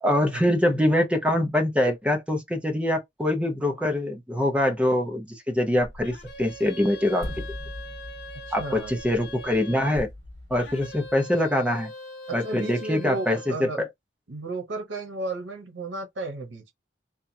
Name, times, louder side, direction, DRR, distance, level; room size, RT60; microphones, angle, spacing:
voice 1, 0.0-7.3 8.5-10.1 10.5-11.9 12.3-13.9, left 1 dB, 5° right, 0.6 m, -24 dB
sound 1, 5.8-11.1, left 1 dB, 40° right, 1.2 m, -41 dB
sound 2, 6.0-10.1 10.6-13.6, left 1 dB, 80° left, 1.0 m, -42 dB
voice 2, 8.6-8.9 12.3-13.8 14.3-16.7, right 2 dB, 85° right, 0.8 m, -33 dB
2.9 x 2.3 x 2.6 m
head